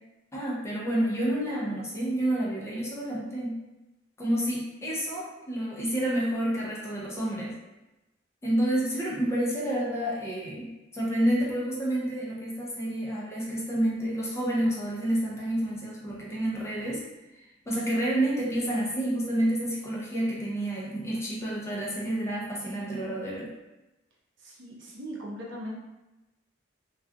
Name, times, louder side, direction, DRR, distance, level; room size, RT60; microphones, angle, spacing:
voice 1, 0.3-3.6 4.2-7.5 8.4-17.0 17.7-23.5, right 1 dB, 15° left, -5 dB, 0.5 m, -29 dB
voice 2, 24.4-25.8, equal, 70° right, -3 dB, 0.6 m, -39 dB
2.3 x 2.3 x 2.5 m, 1.0 s
head